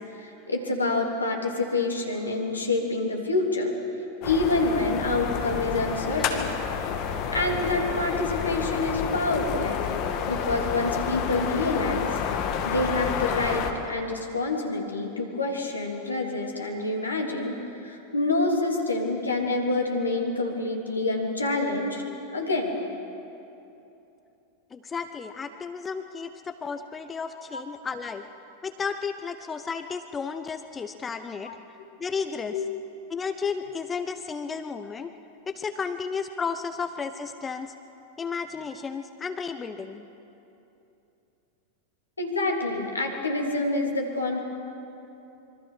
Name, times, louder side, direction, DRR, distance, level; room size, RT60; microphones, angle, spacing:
voice 1, 0.2-3.7 4.2-6.4 7.3-12.2 12.6-22.0 22.3-22.8 27.5-27.6 31.4-31.5 32.5-32.7 42.2-44.4, left 2 dB, 80° left, 1 dB, 3.3 m, -27 dB
sound 1, 4.2-13.7, left 7 dB, 40° left, 2.2 m, -29 dB
voice 2, 24.7-28.2 28.6-31.5 32.0-32.6 33.1-35.1 35.5-37.7 38.2-40.1, left 5 dB, 20° left, 9 dB, 0.9 m, -33 dB
26.5 x 24.0 x 6.4 m, 2.9 s
figure-of-eight pair, 90°, 0 cm